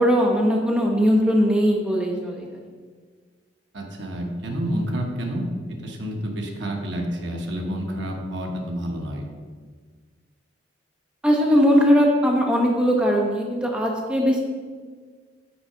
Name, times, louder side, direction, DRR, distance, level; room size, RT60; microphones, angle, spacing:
voice 1, 0.0-2.5 11.2-14.4, equal, 5° right, -1 dB, 0.7 m, -19 dB
voice 2, 3.7-5.4 5.8-9.3, equal, 70° right, 1 dB, 1.1 m, -29 dB
6.0 x 4.8 x 5.4 m, 1.6 s
head